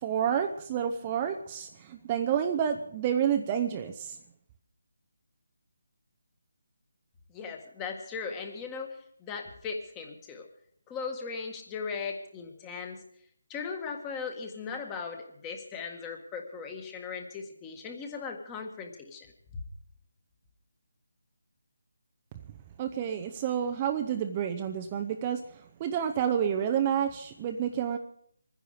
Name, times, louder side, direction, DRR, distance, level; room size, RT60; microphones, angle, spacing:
voice 1, 0.0-4.2 22.8-25.4 25.8-28.0, right 8 dB, 25° right, 6 dB, 0.7 m, -29 dB
voice 2, 7.3-10.5 10.9-13.0 13.5-19.3 19.5-19.6, left 5 dB, 15° left, 4 dB, 1.7 m, -38 dB
24.5 x 10.0 x 5.0 m, 0.68 s
figure-of-eight pair, 165°, 0 cm